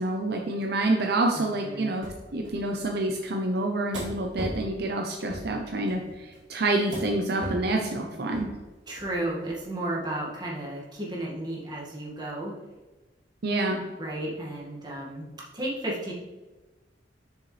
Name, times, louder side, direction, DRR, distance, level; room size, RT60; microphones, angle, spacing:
voice 1, 0.0-2.1 2.3-8.5 13.4-13.8, right 2 dB, 65° right, 2 dB, 0.7 m, -27 dB
voice 2, 1.3-1.9 8.9-12.6 14.0-15.3 15.5-16.1, right 1 dB, 25° right, -4 dB, 2.0 m, -33 dB
sound 1, 2.0-2.2 2.4-3.2 3.9-4.6 5.3-5.5 5.9-6.4 6.9-7.1 7.4-7.7 8.3-8.5 9.0-9.1 9.4-9.5, right 1 dB, 85° right, 2.3 m, -36 dB
6.6 x 6.5 x 3.3 m, 1.2 s
head